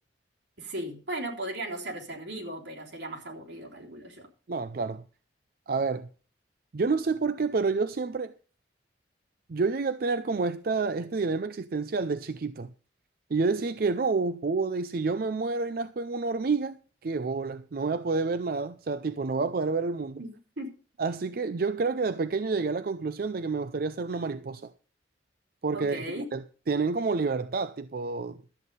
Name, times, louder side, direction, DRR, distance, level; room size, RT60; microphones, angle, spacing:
voice 1, 0.6-4.3 20.2-20.7 25.7-26.3, right 1 dB, 80° right, 3.5 m, -37 dB
voice 2, 4.5-5.0 5.7-6.1 6.7-8.3 9.5-12.7 13.3-16.8 17.0-20.2 21.0-24.7 25.6-26.4 26.7-28.4, right 4 dB, 50° right, 0.4 m, -29 dB
12.5 x 8.2 x 5.4 m
head